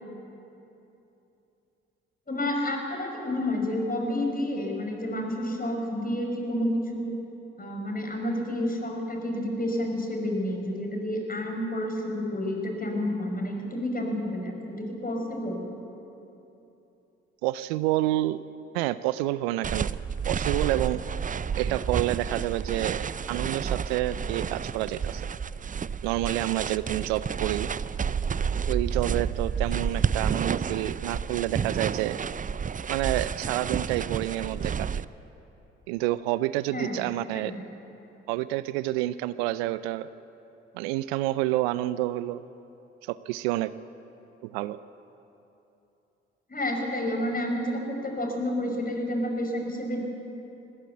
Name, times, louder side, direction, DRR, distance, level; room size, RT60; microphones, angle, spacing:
voice 1, 2.3-7.2 7.6-15.7 36.7-37.0 37.3-37.6 46.5-50.0, left 1 dB, 30° left, 2 dB, 5.5 m, -30 dB
voice 2, 17.4-18.4 18.7-20.0 20.2-21.0 21.6-25.3 26.0-27.7 28.7-32.2 32.9-35.0 35.9-37.5 38.3-40.1 40.7-42.4 43.1-43.7 44.4-44.8, right 16 dB, 80° right, 16 dB, 0.5 m, -29 dB
sound 1, 19.6-35.0, right 6 dB, 25° right, 0.5 m, -30 dB
20.5 x 15.5 x 8.3 m, 3.0 s
hypercardioid pair, 40°, 30 cm